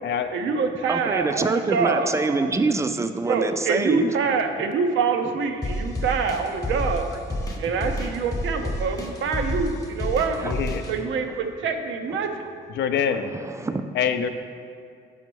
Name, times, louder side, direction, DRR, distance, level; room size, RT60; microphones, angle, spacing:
voice 1, 0.3-2.2 3.3-7.1 7.6-10.4 10.9-12.5, right 5 dB, 75° right, 6 dB, 0.6 m, -25 dB
voice 2, 0.9-4.1 10.4-10.5 13.3-13.8, right 3 dB, 15° right, 8 dB, 0.4 m, -25 dB
sound 1, 5.6-10.9, left 1 dB, 15° left, 0.8 m, -29 dB
voice 3, 10.4-10.8 12.8-13.3 13.9-14.3, left 7 dB, 65° left, 9 dB, 0.4 m, -24 dB
5.6 x 5.1 x 4.6 m, 2.3 s
cardioid pair, 90°, 20 cm